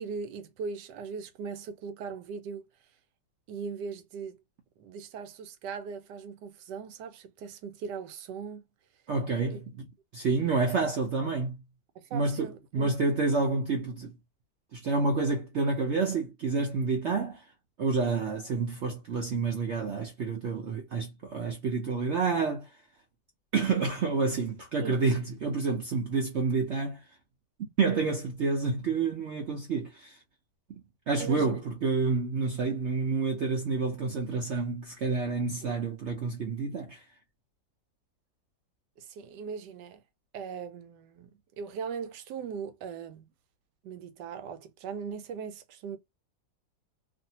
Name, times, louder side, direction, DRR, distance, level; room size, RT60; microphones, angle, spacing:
voice 1, 0.0-2.6 3.5-4.4 4.8-8.7 9.5-9.6 11.9-12.9 24.8-25.0 31.2-31.6 35.6-35.7 39.0-40.0 40.3-41.3 41.6-43.3 43.8-46.0, right 6 dB, 85° right, 1.2 m, -39 dB
voice 2, 9.1-9.9 10.1-11.6 12.1-14.2 14.7-17.4 17.8-22.7 23.5-27.0 27.6-30.2 30.7-30.8 31.1-37.0, right 4 dB, 65° right, 0.7 m, -29 dB
2.6 x 2.5 x 2.7 m
omnidirectional pair, 1.8 m